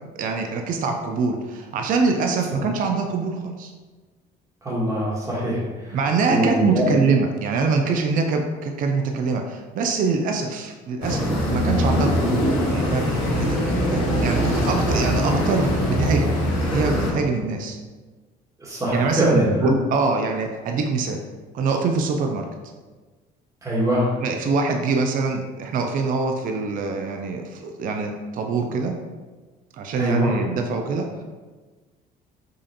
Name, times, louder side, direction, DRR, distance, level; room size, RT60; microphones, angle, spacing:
voice 1, 0.2-3.7 5.9-13.6 13.9-17.8 18.9-21.2 21.5-22.5 24.2-29.0 29.8-31.2, right 4 dB, 55° right, 4 dB, 0.4 m, -24 dB
voice 2, 4.6-6.0 6.3-7.0 18.6-19.7 23.6-24.1 30.0-30.3, equal, 20° right, -6 dB, 1.3 m, -23 dB
sound 1, 11.0-17.1, equal, 85° left, 1.4 m, -22 dB
5.2 x 2.4 x 2.8 m, 1.3 s
cardioid pair, 110°, 17 cm